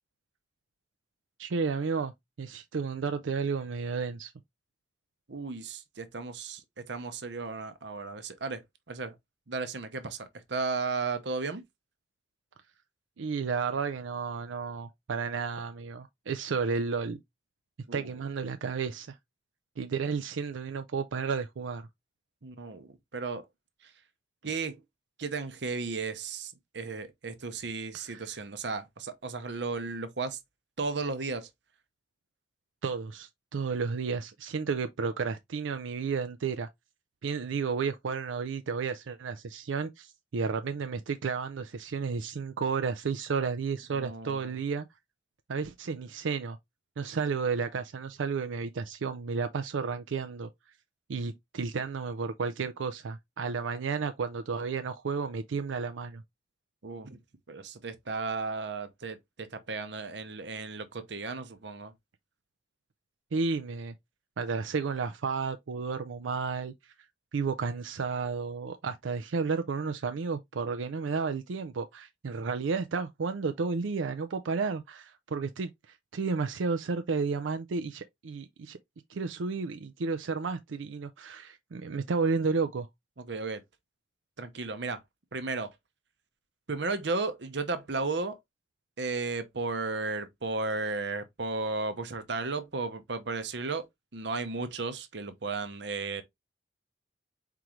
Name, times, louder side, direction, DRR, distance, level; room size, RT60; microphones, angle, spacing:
voice 1, 1.4-2.1 2.4-4.3 13.2-17.2 17.9-19.2 19.8-21.9 27.9-28.4 32.8-36.7 37.2-44.9 45.5-46.6 47.0-50.8 51.1-56.2 63.3-64.0 64.4-66.9 67.3-78.8 79.1-82.9, right 5 dB, 90° right, 0.5 m, -32 dB
voice 2, 5.3-9.1 9.5-11.6 17.9-18.1 22.4-23.4 23.8-23.9 24.4-24.8 25.2-30.4 30.8-31.5 43.9-44.5 56.8-57.2 57.5-61.9 83.3-83.6 84.4-85.0 85.3-85.7 86.7-88.4 89.0-96.2, right 3 dB, 65° right, 0.8 m, -34 dB
4.6 x 3.8 x 3.0 m
head